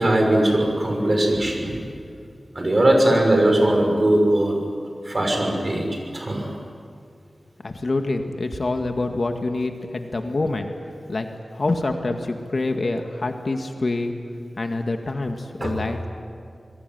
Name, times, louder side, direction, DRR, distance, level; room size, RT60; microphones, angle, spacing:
voice 1, 0.0-1.7 2.5-4.6 5.0-5.9 6.1-6.5 15.6-15.7, right 1 dB, 40° right, 2 dB, 6.2 m, -19 dB
voice 2, 7.6-10.7 11.1-11.3 11.5-14.1 14.6-16.1, left 2 dB, 55° left, 5 dB, 2.0 m, -26 dB
27.0 x 21.5 x 9.4 m, 2.3 s
wide cardioid pair, 90°, 0 cm